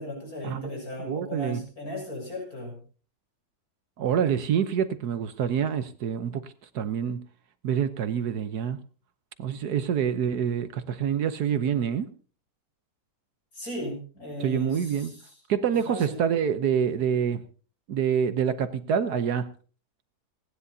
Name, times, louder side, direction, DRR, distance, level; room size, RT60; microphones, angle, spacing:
voice 1, 0.0-2.8 13.5-15.2 15.7-16.2, left 1 dB, 55° left, 0 dB, 7.4 m, -36 dB
voice 2, 1.0-1.6 4.0-7.2 7.6-8.8 9.4-12.1 14.4-15.1 15.5-17.4 17.9-19.5, right 8 dB, 70° right, 12 dB, 1.4 m, -26 dB
30.0 x 10.5 x 2.7 m, 0.39 s
omnidirectional pair, 1.8 m